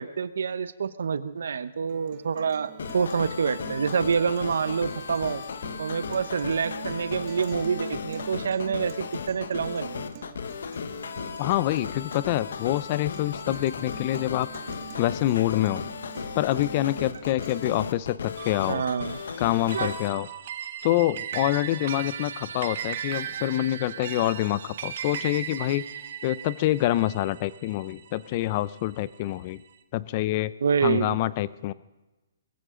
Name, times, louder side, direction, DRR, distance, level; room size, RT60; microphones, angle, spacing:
voice 1, 0.0-5.4 5.8-10.1 18.7-19.2 19.7-19.9 30.6-31.2, right 6 dB, 75° right, 14 dB, 0.9 m, -27 dB
Guitar, 1.9-17.9, right 13 dB, 35° right, 0.8 m, -46 dB
sound 1, 2.8-20.1, left 6 dB, 75° left, 1.1 m, -36 dB
voice 2, 11.4-14.5 15.0-15.8 16.3-18.8 19.4-20.3 20.8-25.8 26.2-29.6 29.9-30.5 30.8-31.7, left 15 dB, 30° left, 18 dB, 0.5 m, -26 dB
sound 2, 18.4-29.0, right 9 dB, 50° right, 1.2 m, -37 dB
22.0 x 15.0 x 3.8 m, 1.1 s
hypercardioid pair, 160°, 0 cm